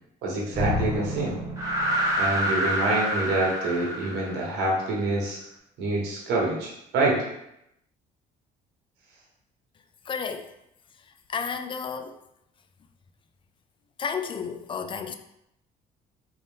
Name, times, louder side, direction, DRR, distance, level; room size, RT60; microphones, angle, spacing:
voice 1, 0.2-1.4 2.2-5.4 5.8-7.2, right 2 dB, 90° right, 1.2 m, -26 dB
sound 1, 0.5-4.9, equal, 20° right, 1.2 m, -27 dB
voice 2, 10.1-10.5 11.3-12.2 14.0-15.1, left 6 dB, 30° left, 0.3 m, -32 dB
3.8 x 2.5 x 3.5 m
cardioid pair, 110°, 17 cm